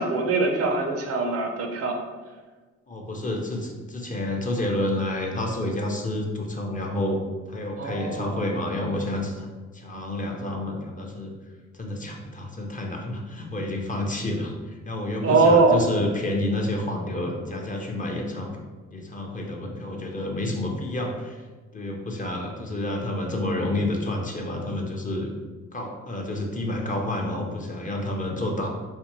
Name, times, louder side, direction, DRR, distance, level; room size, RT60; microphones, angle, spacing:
voice 1, 0.0-2.0 7.8-8.3 15.2-15.8, right 3 dB, 50° right, 3 dB, 0.6 m, -21 dB
voice 2, 2.9-7.2 7.5-9.5 9.7-11.3 11.7-18.6 18.9-21.4 21.7-25.3 25.7-28.7, left 1 dB, 25° left, 0 dB, 0.6 m, -29 dB
4.2 x 2.2 x 3.0 m, 1.3 s
cardioid pair, 90°, 30 cm